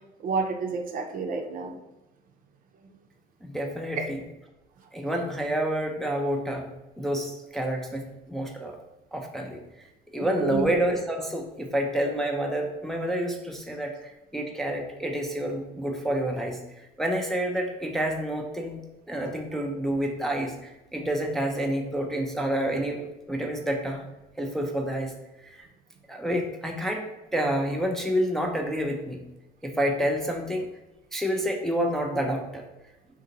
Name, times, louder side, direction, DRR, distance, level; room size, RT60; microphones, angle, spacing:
voice 1, 0.2-1.7 10.2-10.7, right 4 dB, 55° right, 4 dB, 0.5 m, -30 dB
voice 2, 3.4-4.2 4.9-6.7 7.0-8.7 9.1-9.6 10.1-18.8 19.1-24.0 24.4-25.1 25.4-25.7 26.1-27.0 27.3-29.2 29.6-30.7 31.1-32.6, right 1 dB, ahead, 1 dB, 0.4 m, -28 dB
2.7 x 2.6 x 3.8 m, 0.96 s
cardioid pair, 110°, 17 cm